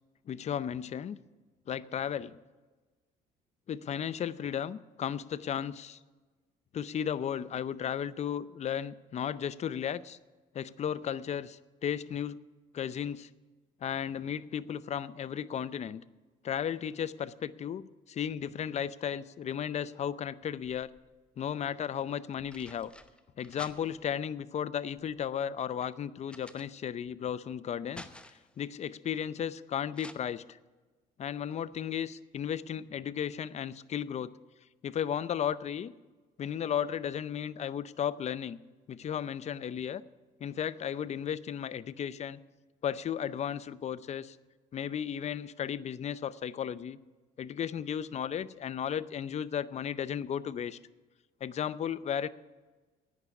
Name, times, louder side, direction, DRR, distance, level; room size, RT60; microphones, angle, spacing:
voice 1, 0.3-1.2 1.7-2.4 3.7-6.0 6.7-10.2 10.5-12.4 12.7-13.3 13.8-16.0 16.4-20.9 21.4-22.9 23.4-28.1 28.6-30.4 31.2-34.3 34.8-35.9 36.4-38.6 38.9-40.0 40.4-42.4 42.8-44.4 44.7-47.0 47.4-50.8 51.4-52.3, left 9 dB, 40° left, 17 dB, 0.6 m, -34 dB
sound 1, 20.4-21.2 22.1-24.2 24.9-27.2 27.5-28.6 29.9-30.1, left 1 dB, 5° left, 0.9 m, -51 dB
11.0 x 9.5 x 8.3 m, 1.3 s
cardioid pair, 110°, 17 cm